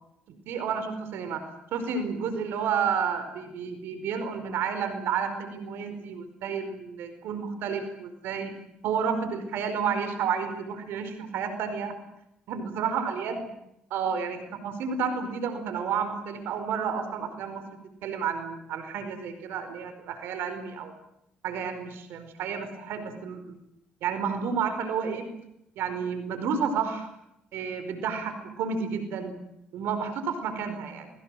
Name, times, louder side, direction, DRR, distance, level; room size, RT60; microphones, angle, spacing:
voice 1, 0.3-1.4 1.7-8.5 8.8-11.9 12.5-13.5 13.9-17.6 18.0-20.9 21.4-23.5 24.0-25.3 25.8-27.1 27.5-29.3 29.7-31.1, right 6 dB, 75° right, 9 dB, 4.8 m, -31 dB
28.0 x 22.0 x 7.7 m, 0.81 s
supercardioid pair, 70°, 4 cm